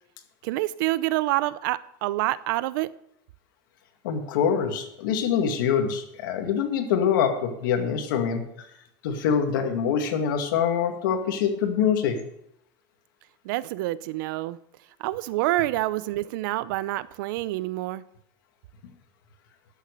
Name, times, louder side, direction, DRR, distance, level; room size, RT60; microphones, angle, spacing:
voice 1, 0.4-2.9 13.4-14.6 15.0-18.0, right 17 dB, 75° right, 18 dB, 0.6 m, -27 dB
voice 2, 4.0-8.4 9.0-12.2, left 7 dB, 85° left, 5 dB, 2.1 m, -24 dB
12.5 x 7.4 x 6.7 m, 0.76 s
supercardioid pair, 130°, 11 cm